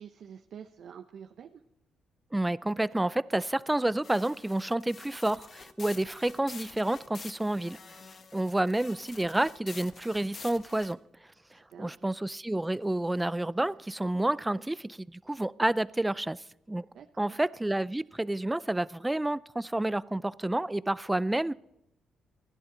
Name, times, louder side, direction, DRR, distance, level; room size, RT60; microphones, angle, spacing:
voice 1, 0.0-1.6 11.7-12.1 16.9-17.4, right 8 dB, 65° right, 0.8 m, -47 dB
voice 2, 2.3-8.0 8.3-11.0 11.8-16.4 16.7-16.9 17.2-21.5, right 1 dB, 10° right, 0.5 m, -29 dB
sound 1, 4.0-10.9, left 5 dB, 45° left, 1.3 m, -48 dB
29.5 x 11.0 x 3.9 m
cardioid pair, 90°, 0 cm